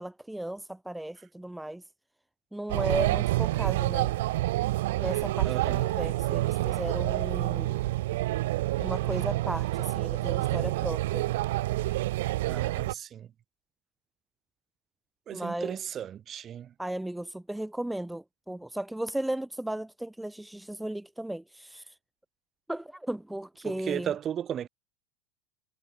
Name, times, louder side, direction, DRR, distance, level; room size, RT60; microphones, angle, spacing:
voice 1, 0.0-1.8 2.5-4.1 5.0-7.8 8.8-11.2 15.3-15.8 16.8-22.0 22.7-24.1, right 1 dB, 5° right, 0.7 m, -35 dB
sound 1, 2.7-12.9, right 17 dB, 85° right, 1.0 m, -28 dB
voice 2, 5.4-5.8 12.5-13.3 15.3-16.7 23.6-24.7, right 9 dB, 35° right, 3.4 m, -35 dB
supercardioid pair, 125°, 0 cm